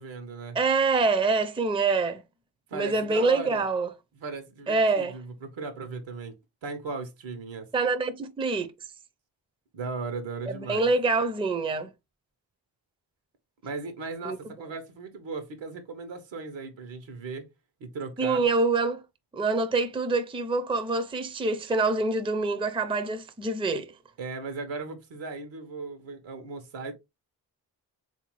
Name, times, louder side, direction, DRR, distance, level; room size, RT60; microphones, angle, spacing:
voice 1, 0.0-0.6 2.7-3.6 4.1-6.3 6.6-7.7 9.7-10.9 13.6-17.5 17.8-18.5 24.2-26.9, right 4 dB, 75° right, 1.0 m, -37 dB
voice 2, 0.5-2.2 2.7-3.9 4.7-5.1 7.7-8.7 10.5-11.9 14.2-14.5 18.2-19.0 19.3-23.9, right 3 dB, 10° right, 0.5 m, -25 dB
3.5 x 2.7 x 3.0 m
supercardioid pair, 45°, 45 cm